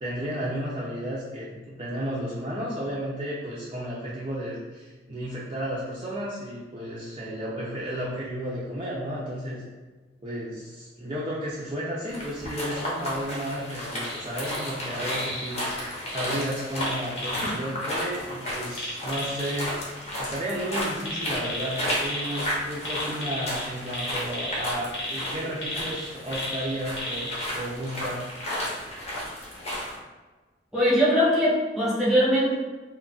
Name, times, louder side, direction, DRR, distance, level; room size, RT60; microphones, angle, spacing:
voice 1, 0.0-9.6 10.2-19.8 20.2-28.2, equal, 30° right, -7 dB, 0.5 m, -33 dB
sound 1, 12.1-30.0, left 1 dB, 40° left, 0.7 m, -33 dB
sound 2, 14.0-14.7 15.0-15.5 16.1-17.5 18.7-19.6 21.0-22.5 22.8-27.4 27.9-28.0, left 1 dB, 85° left, 1.1 m, -34 dB
voice 2, 30.7-32.5, equal, ahead, -8 dB, 1.0 m, -21 dB
2.3 x 2.1 x 3.8 m, 1.3 s
head